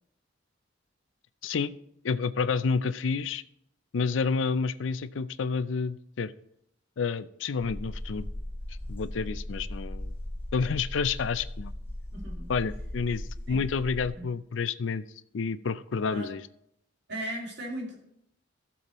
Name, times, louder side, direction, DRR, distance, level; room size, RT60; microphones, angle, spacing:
voice 1, 2.0-3.4 3.9-6.3 7.0-8.3 8.9-10.1 10.5-11.7 12.5-15.0 15.3-16.4, left 5 dB, 75° left, 15 dB, 0.5 m, -29 dB
sound 1, 7.6-14.1, left 1 dB, 10° left, 3.6 m, -38 dB
voice 2, 12.1-12.5 13.5-13.6 14.1-14.3 16.1-16.4 17.1-18.0, right 1 dB, 65° right, -1 dB, 2.5 m, -37 dB
14.5 x 7.0 x 3.0 m, 0.74 s
head